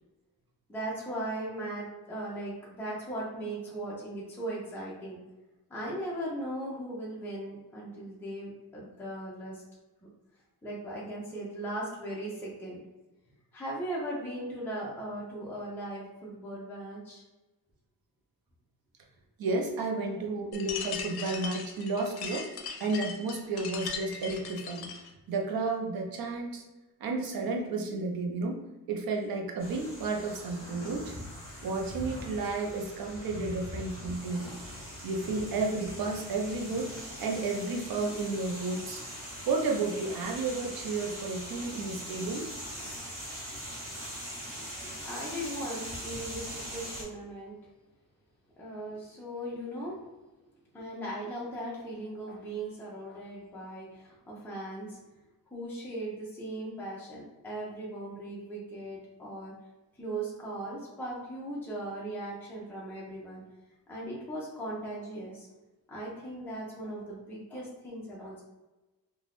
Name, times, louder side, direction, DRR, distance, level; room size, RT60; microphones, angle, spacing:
voice 1, 0.7-5.2 5.7-9.6 10.6-12.8 13.5-17.2 44.5-47.6 48.6-50.0 50.7-55.0 55.5-59.6 60.0-63.4 63.9-65.5 65.9-68.4, right 1 dB, 5° left, -6 dB, 0.6 m, -38 dB
voice 2, 19.4-22.5 22.8-24.9 25.3-26.6 27.0-28.6 28.9-31.1 31.6-34.5 35.0-39.0 39.5-42.5, right 3 dB, 70° right, 1 dB, 0.7 m, -32 dB
sound 1, 20.5-25.1, left 6 dB, 90° left, 0.5 m, -39 dB
sound 2, 29.6-47.0, equal, 25° right, 1.5 m, -41 dB
2.5 x 2.3 x 3.3 m, 1.1 s
wide cardioid pair, 170°, 37 cm